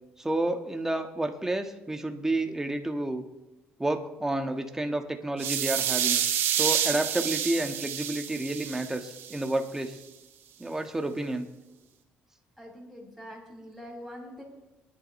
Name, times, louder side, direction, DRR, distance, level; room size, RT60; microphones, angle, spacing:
voice 1, 0.2-3.2 3.8-6.2 6.5-9.9 10.6-11.5, right 1 dB, 10° right, 4 dB, 1.6 m, -30 dB
sound 1, 5.4-9.5, right 9 dB, 70° right, 2.1 m, -28 dB
voice 2, 12.6-14.4, equal, 5° left, -2 dB, 6.3 m, -44 dB
24.0 x 11.0 x 3.3 m, 1.0 s
cardioid pair, 90°, 4 cm